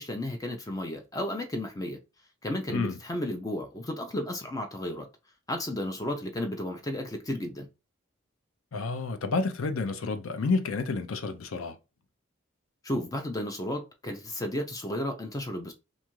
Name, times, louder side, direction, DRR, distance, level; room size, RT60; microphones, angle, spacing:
voice 1, 0.0-2.0 2.4-5.1 5.5-7.7 12.8-15.7, left 1 dB, 15° left, 0.4 m, -33 dB
voice 2, 8.7-11.8, left 3 dB, 85° left, 0.5 m, -30 dB
2.6 x 2.4 x 2.9 m
head